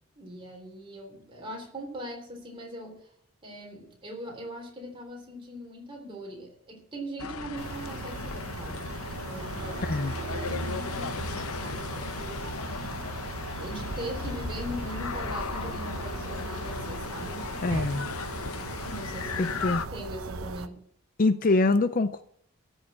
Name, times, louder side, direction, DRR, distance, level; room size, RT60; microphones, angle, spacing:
voice 1, 0.2-3.1 3.4-10.0 10.2-12.9 13.5-17.6 18.8-19.6 19.9-20.9, equal, 25° right, 1 dB, 3.5 m, -41 dB
sound 1, 7.2-19.9, left 5 dB, 75° left, 0.7 m, -36 dB
sound 2, 7.6-20.7, right 4 dB, 70° right, 0.8 m, -38 dB
voice 2, 9.8-10.1 17.6-18.1 19.4-19.8 21.2-22.2, left 3 dB, 40° left, 12 dB, 0.5 m, -24 dB
13.5 x 6.4 x 7.4 m, 0.67 s
head